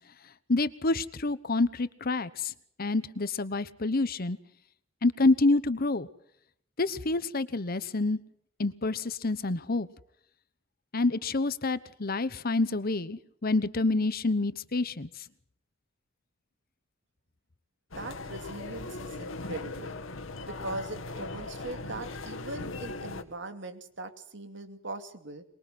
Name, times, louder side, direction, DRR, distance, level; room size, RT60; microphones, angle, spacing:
voice 1, 0.5-2.5 2.8-4.4 5.0-6.1 6.8-8.2 8.6-9.9 10.9-15.1, left 2 dB, 50° left, 15 dB, 1.0 m, -27 dB
sound 1, 17.9-23.2, left 2 dB, 85° left, 1.9 m, -39 dB
voice 2, 18.0-20.0 20.4-25.4, right 2 dB, 65° right, 8 dB, 2.6 m, -40 dB
24.5 x 22.0 x 7.9 m, 0.69 s
head